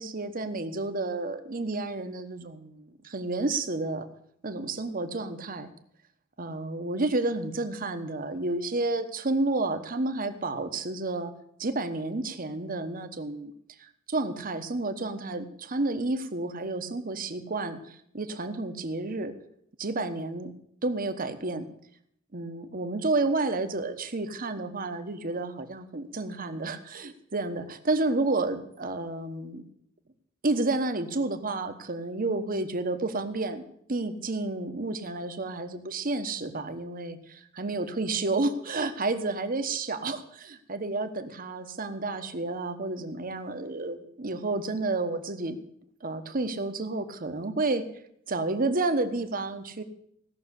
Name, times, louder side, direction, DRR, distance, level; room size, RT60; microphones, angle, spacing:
voice 1, 0.0-4.1 4.4-5.7 6.4-11.3 11.6-13.5 13.8-19.3 19.8-20.5 20.8-21.7 22.3-29.6 30.4-33.6 33.9-45.6 46.0-47.8 48.3-49.8, right 2 dB, 45° right, 9 dB, 1.2 m, -30 dB
17.0 x 6.6 x 8.2 m, 0.71 s
head